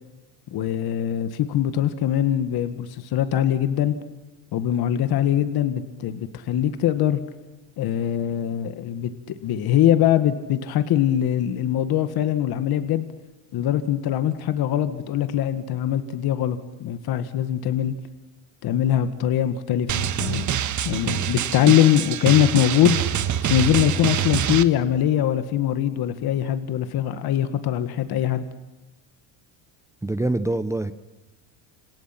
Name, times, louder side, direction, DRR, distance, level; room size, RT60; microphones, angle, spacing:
voice 1, 0.5-3.9 4.5-7.2 7.8-13.1 13.5-17.9 18.6-20.5 20.9-23.0 23.4-28.4, left 11 dB, 50° left, 10 dB, 1.8 m, -22 dB
Drum, 19.9-24.6, right 10 dB, 35° right, 1.4 m, -25 dB
voice 2, 30.0-30.9, right 2 dB, 5° right, 11 dB, 0.8 m, -24 dB
29.5 x 27.0 x 5.9 m, 1.1 s
cardioid pair, 130°, 49 cm